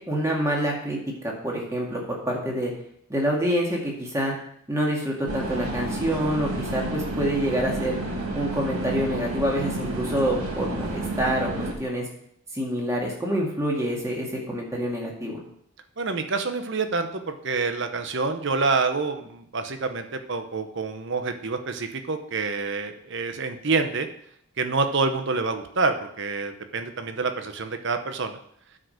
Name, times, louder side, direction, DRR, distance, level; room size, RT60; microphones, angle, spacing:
voice 1, 0.1-1.0 1.2-2.7 3.1-4.3 4.7-8.0 8.3-12.1 12.5-15.4, equal, 15° right, -2 dB, 2.0 m, -26 dB
sound 1, 5.3-11.7, right 2 dB, 85° right, 2.0 m, -30 dB
voice 2, 16.0-24.1 24.6-28.4, right 4 dB, 55° right, 7 dB, 0.8 m, -27 dB
9.7 x 5.1 x 6.4 m, 0.70 s
head